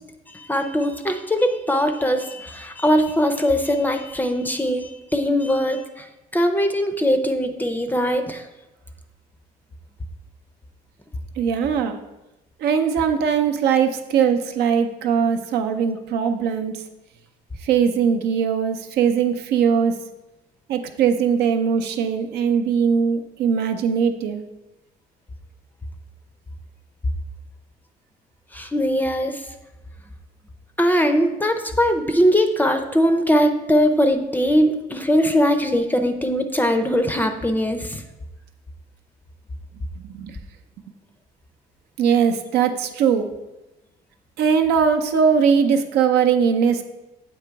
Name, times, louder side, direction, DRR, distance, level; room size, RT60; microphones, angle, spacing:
voice 1, 0.3-6.1 6.3-8.4 28.5-29.4 30.8-38.0, equal, 10° left, 6 dB, 0.5 m, -21 dB
voice 2, 11.4-12.0 12.6-16.8 17.6-19.9 20.7-24.4 40.0-40.4 42.0-43.3 44.4-46.8, right 7 dB, 75° right, 6 dB, 0.6 m, -20 dB
8.0 x 3.0 x 4.6 m, 1.0 s
cardioid pair, 110°, 17 cm